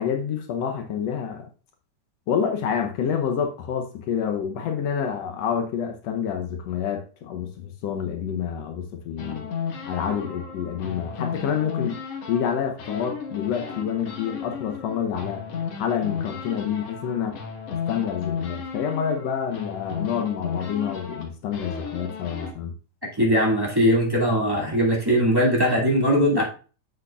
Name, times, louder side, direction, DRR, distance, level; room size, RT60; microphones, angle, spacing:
voice 1, 0.0-1.5 2.3-9.5 9.8-12.0 12.3-15.4 15.7-17.4 17.7-22.7, left 8 dB, 85° left, 4 dB, 1.4 m, -28 dB
sound 1, 9.2-12.5 12.8-22.5, left 6 dB, 55° left, 1.9 m, -34 dB
voice 2, 23.2-26.4, equal, 10° right, -4 dB, 1.3 m, -20 dB
8.4 x 7.8 x 2.4 m, 0.36 s
omnidirectional pair, 4.0 m